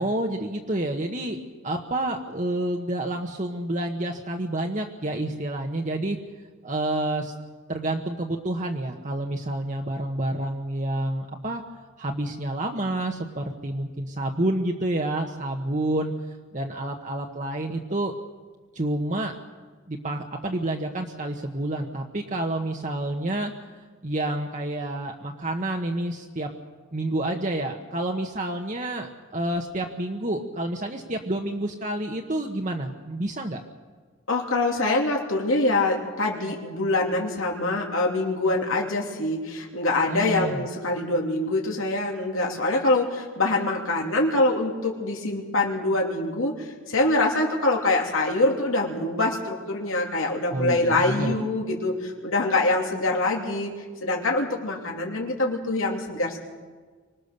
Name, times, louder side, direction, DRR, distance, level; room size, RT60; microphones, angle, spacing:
voice 1, 0.0-1.4 1.6-6.2 6.6-7.3 7.7-11.6 12.0-16.1 16.5-18.1 18.7-19.3 19.9-23.7 24.0-26.5 26.9-33.6 40.1-40.6 50.5-51.3, right 1 dB, 35° right, 2 dB, 1.2 m, -29 dB
voice 2, 34.3-53.7 54.0-56.4, left 2 dB, 85° left, 0 dB, 3.0 m, -24 dB
25.0 x 19.5 x 6.8 m, 1.5 s
head